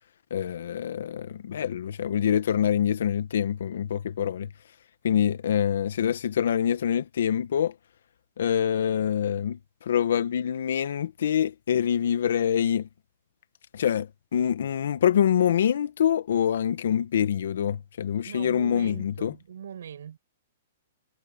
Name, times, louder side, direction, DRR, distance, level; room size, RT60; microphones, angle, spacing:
voice 1, 0.3-4.5 5.0-7.7 8.4-12.9 13.7-19.3, left 9 dB, 75° left, 1.4 m, -25 dB
voice 2, 18.3-20.2, right 8 dB, 75° right, 6.9 m, -40 dB
hypercardioid pair, 145°, 0 cm